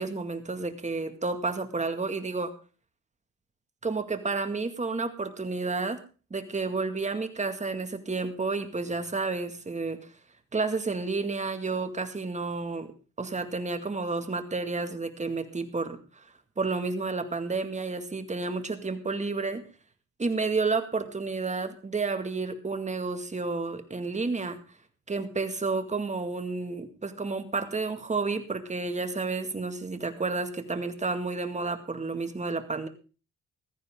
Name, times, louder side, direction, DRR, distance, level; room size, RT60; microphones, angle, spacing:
voice 1, 0.0-2.5 3.8-6.0 6.3-10.0 10.5-12.9 13.2-16.3 16.6-19.6 20.2-24.6 25.1-32.9, right 3 dB, 25° right, 8 dB, 2.1 m, -31 dB
15.5 x 14.0 x 3.7 m, 0.35 s
cardioid pair, 90°, 30 cm